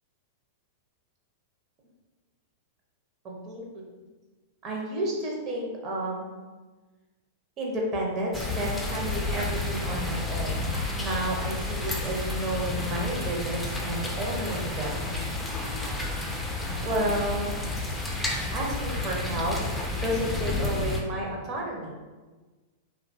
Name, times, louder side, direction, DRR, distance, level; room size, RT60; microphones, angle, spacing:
voice 1, 3.2-3.8 4.6-6.3 7.6-15.1 16.8-17.5 18.5-22.0, right 1 dB, 35° right, -1 dB, 0.7 m, -31 dB
sound 1, 8.3-21.0, left 2 dB, 5° left, 0.4 m, -31 dB
2.6 x 2.2 x 2.5 m, 1.3 s
hypercardioid pair, 100°, 0 cm